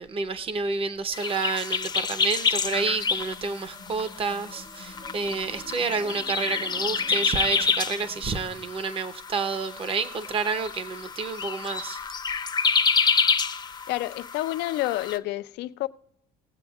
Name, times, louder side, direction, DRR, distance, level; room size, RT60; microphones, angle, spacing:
voice 1, 0.0-12.0, right 4 dB, 35° right, 0.8 m, -29 dB
sound 1, 1.1-15.2, left 5 dB, 25° left, 0.6 m, -28 dB
sound 2, 2.5-8.8, left 1 dB, 80° right, 2.0 m, -48 dB
voice 2, 13.9-15.9, left 17 dB, 85° left, 0.5 m, -29 dB
19.5 x 7.8 x 2.3 m
cardioid pair, 110°, 17 cm